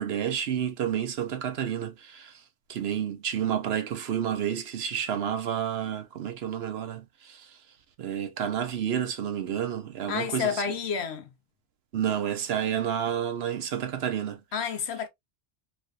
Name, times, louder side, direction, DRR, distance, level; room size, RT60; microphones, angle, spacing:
voice 1, 0.0-2.3 2.7-7.5 8.0-10.6 11.9-14.4, right 9 dB, 65° right, 0.8 m, -30 dB
voice 2, 10.1-11.3 14.5-15.1, left 7 dB, 65° left, 1.0 m, -30 dB
3.3 x 3.2 x 2.4 m
omnidirectional pair, 1.2 m